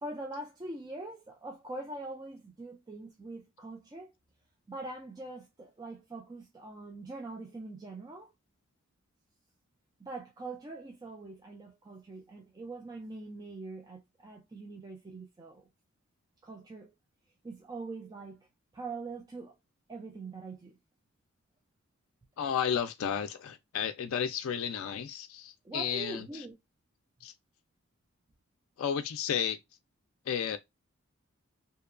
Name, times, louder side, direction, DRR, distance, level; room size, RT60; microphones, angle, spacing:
voice 1, 0.0-4.1 4.7-8.3 10.0-15.7 16.4-16.9 17.4-18.5 18.7-19.6 19.9-20.8 25.6-26.5, right 2 dB, 20° right, 0.3 m, -43 dB
voice 2, 22.4-26.5 27.2-27.3 28.8-29.6 30.2-30.6, left 8 dB, 75° left, 0.3 m, -32 dB
2.7 x 2.2 x 2.4 m
head